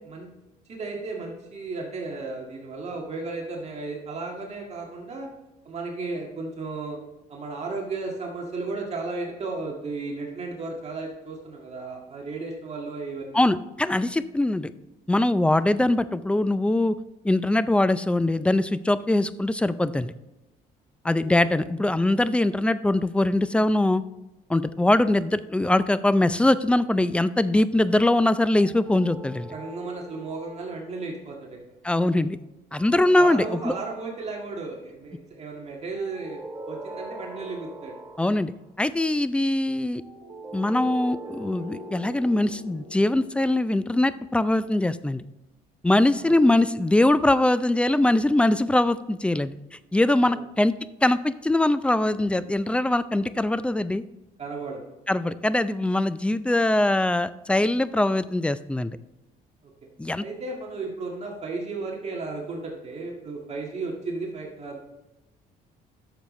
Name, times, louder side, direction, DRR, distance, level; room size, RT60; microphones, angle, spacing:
voice 1, 0.7-5.3 5.7-7.0 7.3-13.4 21.2-21.3 29.5-31.6 33.1-36.4 36.7-38.0 46.2-46.4 50.2-50.4 54.4-54.8 60.2-64.9, right 3 dB, 40° right, 0 dB, 1.8 m, -34 dB
voice 2, 13.3-14.7 15.1-16.9 17.2-20.1 21.0-24.0 24.5-29.5 31.8-32.4 32.7-33.7 38.2-40.0 40.5-45.2 45.8-49.5 49.9-50.7 51.0-54.0 55.1-59.0 60.0-60.2, left 1 dB, 5° left, 15 dB, 0.3 m, -22 dB
sound 1, 28.6-31.0 32.7-34.5 35.9-38.7 40.0-44.5, right 2 dB, 20° right, 1.8 m, -42 dB
12.5 x 6.9 x 3.1 m, 0.99 s
cardioid pair, 110°, 17 cm